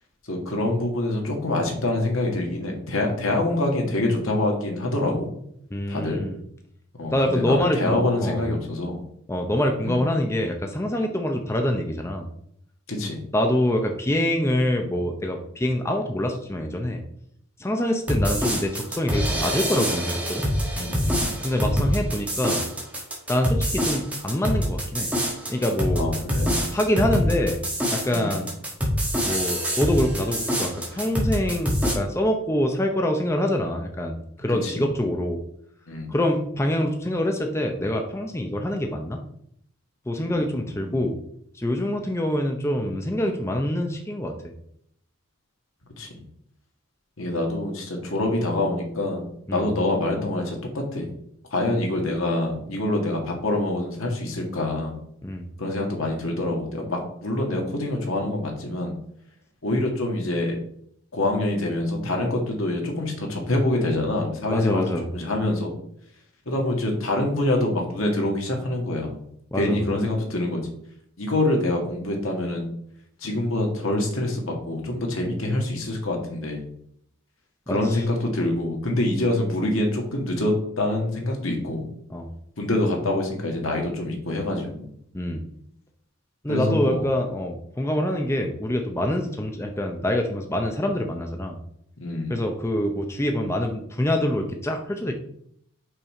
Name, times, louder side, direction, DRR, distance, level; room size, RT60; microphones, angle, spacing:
voice 1, 0.2-5.3 5.9-6.2 7.0-9.0 9.8-10.0 12.9-13.2 20.8-21.3 26.0-26.6 28.1-28.3 34.5-34.9 35.9-36.1 40.2-41.0 46.0-46.2 47.2-51.1 51.5-55.0 55.6-59.0 59.6-60.6 61.1-64.8 65.1-65.7 66.4-69.2 69.5-70.6 71.2-72.7 73.2-76.7 77.7-81.8 82.6-84.9 86.5-87.1 92.0-92.4, left 1 dB, 75° left, 1 dB, 1.7 m, -26 dB
voice 2, 5.7-6.4 7.1-8.4 9.3-12.3 13.3-17.0 17.6-20.5 21.4-22.6 23.3-25.1 25.5-26.1 26.7-27.6 27.9-28.5 29.2-35.4 36.1-39.2 40.1-41.2 41.5-44.4 49.5-49.7 55.2-55.5 64.5-65.1 69.5-69.8 77.7-78.0 82.1-82.3 85.1-85.5 86.4-91.6 92.3-95.1, left 1 dB, 10° left, 3 dB, 0.6 m, -25 dB
sound 1, 18.1-31.9, equal, 5° right, 1.4 m, -25 dB
5.6 x 5.4 x 4.2 m, 0.69 s
head